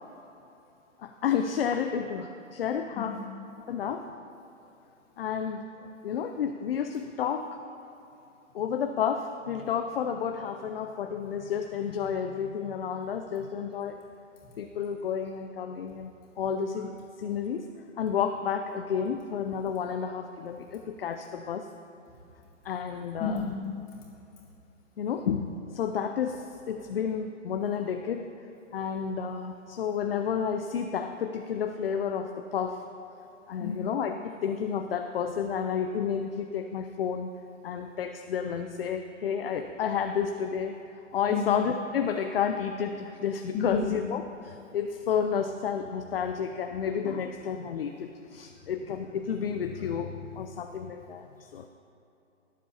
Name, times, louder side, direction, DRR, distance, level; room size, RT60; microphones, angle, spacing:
voice 1, 1.0-3.2 3.6-4.1 5.2-5.7 6.0-7.5 8.5-14.0 14.6-16.9 17.2-17.7 18.0-21.7 22.6-23.4 25.0-28.3 28.7-32.8 33.5-37.3 37.6-40.7 41.1-51.7, left 7 dB, 50° left, 6 dB, 0.5 m, -31 dB
voice 2, 23.2-23.6 33.6-33.8 41.3-41.5 43.5-43.9, left 5 dB, 20° left, -5 dB, 2.3 m, -31 dB
21.5 x 7.4 x 2.8 m, 2.9 s
hypercardioid pair, 155°, 39 cm